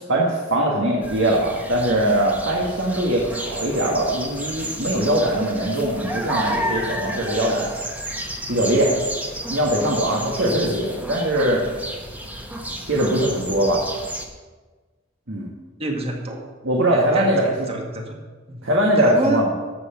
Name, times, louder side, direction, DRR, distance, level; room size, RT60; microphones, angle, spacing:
voice 1, 0.1-7.7 8.5-9.0 9.5-11.6 12.9-13.9 15.3-15.5 16.6-17.7 18.6-19.5, right 1 dB, 80° right, -2 dB, 1.8 m, -21 dB
sound 1, 1.0-14.3, equal, 10° right, 1.1 m, -32 dB
voice 2, 15.8-16.5 16.9-18.2 18.5-18.6 19.0-19.5, right 1 dB, 30° right, 1 dB, 1.7 m, -27 dB
13.5 x 5.8 x 5.9 m, 1.3 s
head